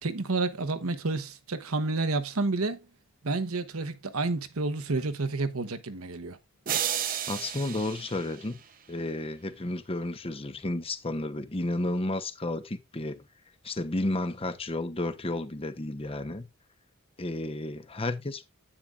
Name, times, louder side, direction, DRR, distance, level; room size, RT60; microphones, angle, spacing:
voice 1, 0.0-2.8 3.2-6.4, right 3 dB, 80° right, 1.1 m, -30 dB
sound 1, 6.7-9.0, right 9 dB, 40° right, 0.8 m, -33 dB
voice 2, 7.3-8.6 8.9-13.2 13.6-16.5 17.2-18.4, left 2 dB, 25° left, 0.9 m, -32 dB
10.0 x 8.9 x 2.5 m
head